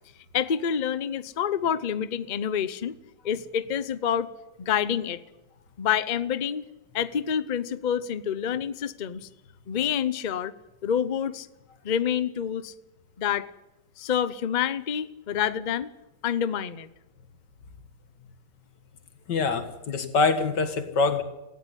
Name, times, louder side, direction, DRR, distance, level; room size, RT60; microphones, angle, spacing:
voice 1, 0.3-2.9 3.2-4.3 4.6-5.2 5.8-6.6 6.9-9.3 9.7-10.5 10.8-11.5 11.8-12.7 13.2-13.5 14.0-15.9 16.2-16.9, left 8 dB, 85° left, 15 dB, 0.4 m, -27 dB
voice 2, 19.3-21.2, left 4 dB, 60° left, 9 dB, 2.4 m, -24 dB
18.0 x 15.5 x 9.9 m, 0.99 s
omnidirectional pair, 2.1 m